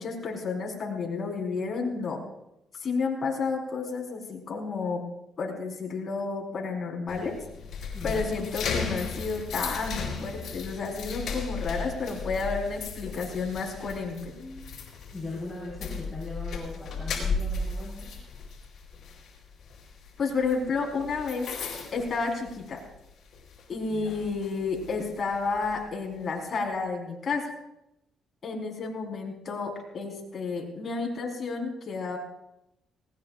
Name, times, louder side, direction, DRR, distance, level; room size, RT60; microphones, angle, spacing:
voice 1, 0.0-2.2 2.7-5.0 5.4-7.4 8.0-14.3 20.2-21.5 21.9-22.8 23.7-27.5 28.4-32.2, left 4 dB, 45° left, 0 dB, 4.3 m, -31 dB
sound 1, 7.1-23.0 23.3-23.6 24.1-25.8, left 4 dB, 70° left, 4.1 m, -36 dB
voice 2, 7.9-8.2 15.1-18.1 23.9-24.2, left 2 dB, 15° left, -5 dB, 4.9 m, -39 dB
19.5 x 18.0 x 2.5 m, 0.85 s
cardioid pair, 90°, 0 cm